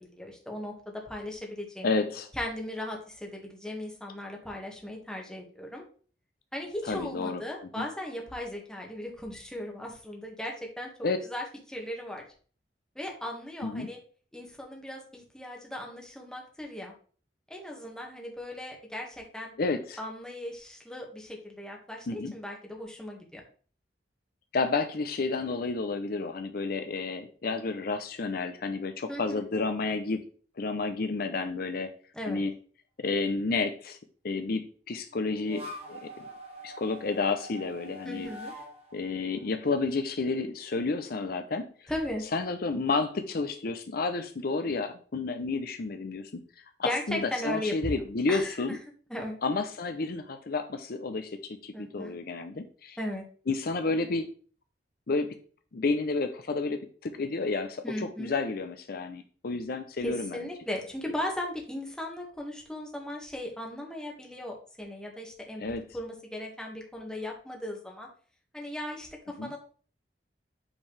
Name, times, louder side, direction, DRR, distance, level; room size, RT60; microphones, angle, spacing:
voice 1, 0.1-1.9 2.4-5.8 6.5-10.9 11.2-12.2 12.9-14.0 14.3-16.9 17.5-19.5 20.0-23.4 29.1-29.4 32.1-32.4 38.0-38.5 41.9-42.2 46.8-48.0 48.3-48.8 49.1-49.3 51.7-52.1 53.0-53.2 57.8-58.3 60.0-65.6 65.9-68.1 68.5-69.1 69.4-69.6, left 1 dB, 5° left, 0 dB, 1.6 m, -37 dB
voice 2, 1.8-2.3 6.8-7.4 7.8-7.9 11.0-11.2 13.6-13.9 19.6-20.0 22.1-22.3 24.5-30.2 30.6-31.9 32.3-32.5 33.0-34.0 34.2-35.6 35.9-36.1 36.6-38.3 38.9-41.9 42.3-46.4 46.8-48.8 49.4-53.0 53.5-54.3 55.1-55.3 55.7-60.5 65.6-65.8 69.4-69.5, left 3 dB, 60° left, 8 dB, 0.6 m, -31 dB
sound 1, 35.1-40.3, equal, 35° right, 1.6 m, -45 dB
8.7 x 4.5 x 3.3 m, 0.42 s
head